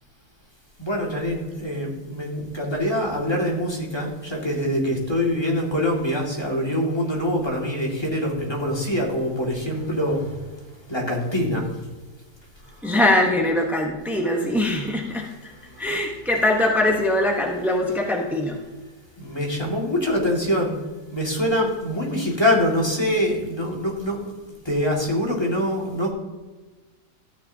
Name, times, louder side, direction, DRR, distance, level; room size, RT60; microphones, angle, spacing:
voice 1, 0.8-10.4 10.9-11.6 14.4-14.5 15.7-15.8 19.2-20.8 21.1-24.2 24.7-26.1, left 1 dB, 15° left, -2 dB, 1.9 m, -24 dB
voice 2, 12.8-15.5 15.8-18.6, left 1 dB, ahead, 0 dB, 0.4 m, -22 dB
13.0 x 9.2 x 2.7 m, 1.2 s
omnidirectional pair, 1.9 m